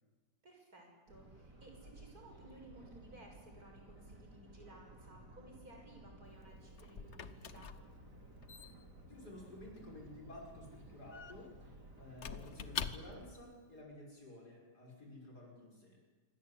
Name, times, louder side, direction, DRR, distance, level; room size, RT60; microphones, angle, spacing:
voice 1, 0.4-7.7, right 1 dB, 60° right, 2 dB, 6.8 m, -58 dB
sound 1, 1.1-13.3, right 1 dB, 75° right, 4.3 m, -56 dB
Squeak / Wood, 6.3-13.4, left 6 dB, 45° left, 1.2 m, -47 dB
voice 2, 9.1-16.0, left 1 dB, 70° left, -1 dB, 6.8 m, -53 dB
27.0 x 24.5 x 8.5 m, 1.3 s
omnidirectional pair, 1.8 m